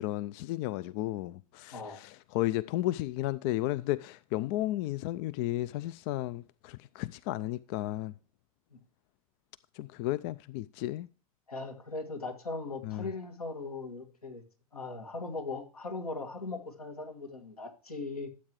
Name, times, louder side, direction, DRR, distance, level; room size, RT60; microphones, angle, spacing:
voice 1, 0.0-8.1 9.7-11.1 12.8-13.1, left 16 dB, 45° left, 0.4 m, -33 dB
voice 2, 1.7-2.0 8.7-8.8 11.5-14.4 14.7-18.3, left 3 dB, 80° left, 2.1 m, -39 dB
12.5 x 8.0 x 3.1 m
figure-of-eight pair, 90°, 19 cm